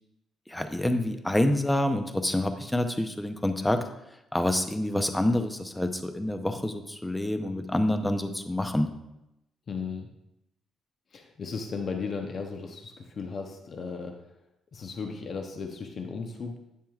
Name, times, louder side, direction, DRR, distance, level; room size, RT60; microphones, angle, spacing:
voice 1, 0.5-3.8 4.3-8.9, left 1 dB, 10° left, 8 dB, 0.6 m, -27 dB
voice 2, 9.7-10.1 11.1-14.2 14.7-16.6, left 5 dB, 50° left, 4 dB, 0.8 m, -35 dB
8.7 x 7.3 x 2.4 m, 0.88 s
cardioid pair, 90°, 0 cm